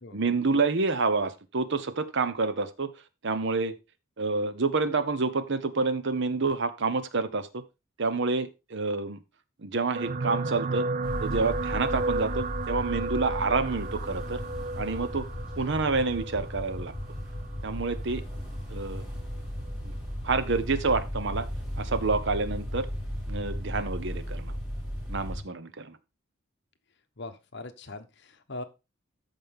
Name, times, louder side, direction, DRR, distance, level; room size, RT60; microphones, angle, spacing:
voice 1, 0.1-2.9 3.2-3.7 4.2-7.6 8.0-9.2 9.6-10.9 11.2-14.4 14.8-15.3 15.6-16.9 17.6-18.2 18.7-19.0 19.8-19.9 20.2-21.5 21.8-22.9 23.3-24.5 25.1-26.0, right 4 dB, 60° right, 13 dB, 0.9 m, -28 dB
sound 1, 9.9-18.4 19.2-19.4 19.7-19.8, right 3 dB, 40° right, 0.5 m, -34 dB
sound 2, 11.0-25.4, equal, 5° right, 4.4 m, -35 dB
voice 2, 27.2-28.6, left 2 dB, 60° left, 8 dB, 1.1 m, -41 dB
13.5 x 5.3 x 3.6 m, 0.26 s
head